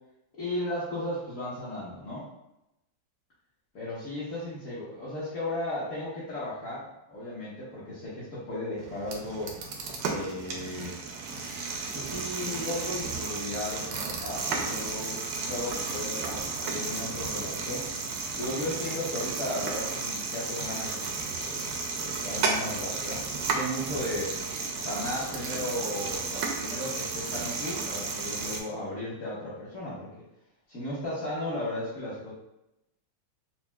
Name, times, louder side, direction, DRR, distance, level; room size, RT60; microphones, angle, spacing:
voice 1, 0.4-2.3 3.7-9.5 10.0-10.9 11.9-17.9 18.4-23.2 23.5-24.4 24.7-30.1 30.7-32.3, left 1 dB, 50° left, -9 dB, 1.1 m, -35 dB
sound 1, 8.8-28.6, right 4 dB, 80° right, 1.3 m, -33 dB
5.7 x 2.2 x 2.2 m, 0.89 s
omnidirectional pair, 2.1 m